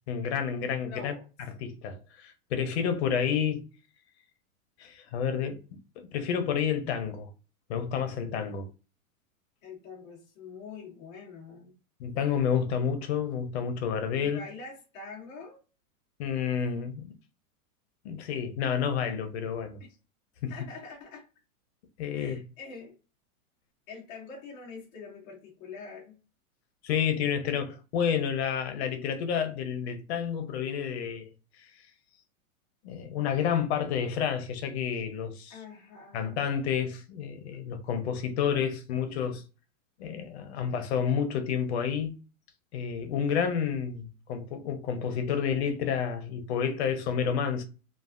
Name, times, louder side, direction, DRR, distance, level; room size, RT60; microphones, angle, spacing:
voice 1, 0.1-3.6 4.8-5.6 6.0-7.3 7.7-8.7 12.0-14.4 16.2-17.1 18.0-19.8 20.4-20.5 22.0-22.4 26.8-31.3 31.6-31.7 32.8-35.6 36.1-39.4 40.0-42.1 42.7-47.6, left 7 dB, 50° left, 0.7 m, -30 dB
voice 2, 0.8-1.3 8.4-8.5 9.6-11.7 14.2-15.6 19.8-19.9 20.5-21.3 22.1-22.9 23.9-26.2 35.5-36.4, left 4 dB, 15° left, 0.4 m, -45 dB
3.2 x 2.4 x 2.4 m
supercardioid pair, 150°, 42 cm